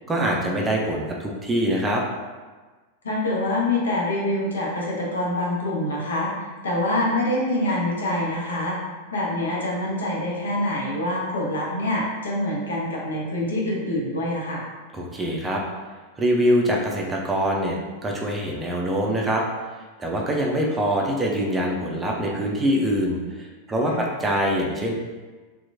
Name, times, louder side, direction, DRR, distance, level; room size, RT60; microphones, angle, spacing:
voice 1, 0.1-2.0 14.9-15.6 16.2-17.8 18.0-19.4 20.0-24.9, equal, 15° right, -1 dB, 0.4 m, -24 dB
voice 2, 3.0-8.8 9.1-14.6 23.9-24.1, left 1 dB, 70° left, -3 dB, 0.6 m, -25 dB
2.8 x 2.2 x 2.5 m, 1.3 s
figure-of-eight pair, 90°, 0 cm